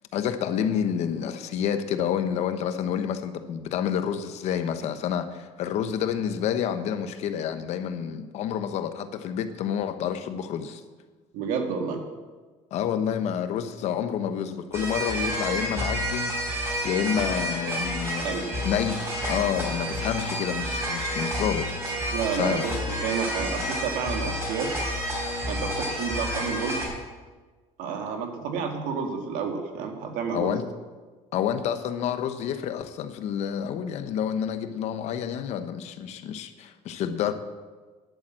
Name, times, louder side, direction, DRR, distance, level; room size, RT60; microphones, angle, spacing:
voice 1, 0.1-10.8 12.7-18.4 18.6-22.0 22.3-22.8 30.3-30.6 31.3-37.3, left 8 dB, 55° left, 10 dB, 0.9 m, -29 dB
voice 2, 11.3-12.0 18.2-18.4 22.1-22.7 23.0-24.7 25.5-26.8 27.8-30.5 37.0-37.1, right 6 dB, 85° right, 4 dB, 2.0 m, -30 dB
sound 1, 14.7-26.9, equal, 20° right, 3.9 m, -30 dB
10.5 x 8.9 x 7.5 m, 1.4 s
cardioid pair, 170°, 13 cm